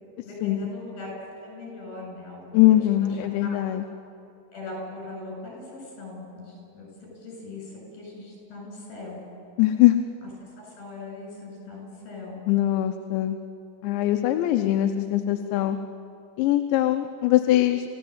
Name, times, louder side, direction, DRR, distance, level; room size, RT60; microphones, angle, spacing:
voice 1, 0.3-1.1 1.4-3.6 4.5-9.2 10.2-12.4, left 2 dB, 55° left, -1 dB, 9.3 m, -40 dB
voice 2, 2.5-3.8 9.6-10.0 12.5-13.4 13.8-15.8 16.4-17.9, left 14 dB, 80° left, 6 dB, 3.0 m, -21 dB
29.5 x 16.0 x 7.9 m, 2.7 s
omnidirectional pair, 5.2 m